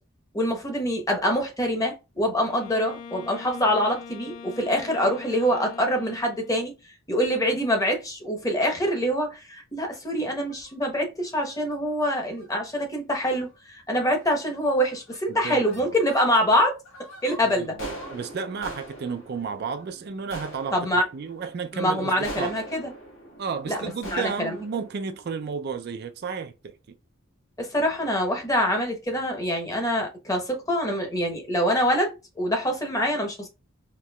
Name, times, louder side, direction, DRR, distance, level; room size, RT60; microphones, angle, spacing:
voice 1, 0.3-6.7 7.1-16.8 17.2-17.8 20.7-21.0 21.7-22.9 23.7-23.8 24.1-24.6 27.6-33.5, equal, 15° left, 0.9 m, -25 dB
Wind instrument woodwind instrument, 2.4-6.8, left 6 dB, 35° left, 0.4 m, -42 dB
sound 1, 10.5-10.8 11.3-11.6 12.3-12.5 12.8-12.9 13.2-13.6 14.2-14.5 14.8-16.5 16.9-26.0, equal, 70° left, 1.3 m, -43 dB
voice 2, 15.3-16.0 17.6-20.9 21.1-22.5 23.4-26.7, right 5 dB, 50° right, 0.4 m, -32 dB
4.3 x 2.9 x 2.2 m
head